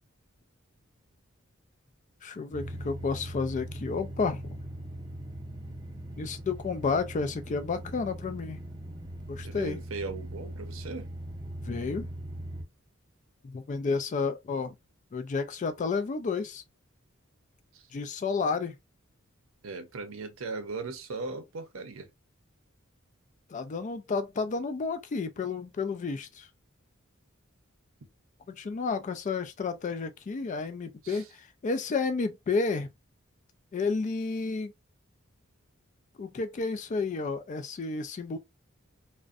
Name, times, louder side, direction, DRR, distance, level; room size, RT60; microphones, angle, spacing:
voice 1, 2.2-4.6 6.2-8.6 9.3-9.8 11.7-12.1 13.4-14.7 15.1-16.6 17.9-18.8 23.5-26.5 28.5-32.9 33.7-34.7 36.2-38.4, left 4 dB, 35° left, 0.3 m, -31 dB
sound 1, 2.5-12.6, right 1 dB, 20° right, 0.5 m, -40 dB
voice 2, 9.4-11.1 17.7-17.9 19.6-22.1 31.0-31.3, right 3 dB, 70° right, 0.6 m, -38 dB
2.5 x 2.1 x 2.4 m
head